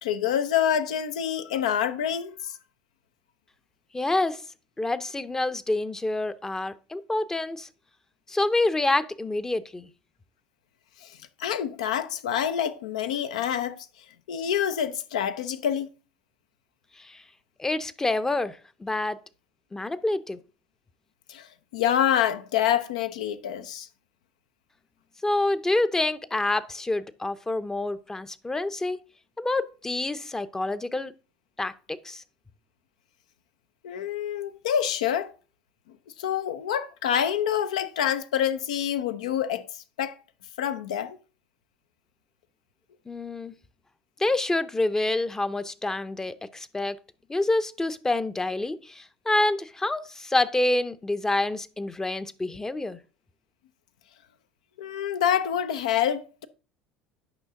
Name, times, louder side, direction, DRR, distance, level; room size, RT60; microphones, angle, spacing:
voice 1, 0.0-2.6 11.0-13.9 14.3-15.9 21.3-23.9 33.8-35.3 36.2-40.2 40.6-41.2 54.8-56.5, left 9 dB, 80° left, 0.6 m, -27 dB
voice 2, 3.9-4.4 4.8-7.7 8.3-9.9 17.0-17.2 17.6-19.2 19.7-20.4 25.2-29.0 29.4-31.1 31.6-32.2 43.1-43.5 44.2-47.0 47.3-53.0, left 2 dB, 15° left, 0.6 m, -27 dB
9.1 x 5.6 x 3.7 m
hypercardioid pair, 75°, 4 cm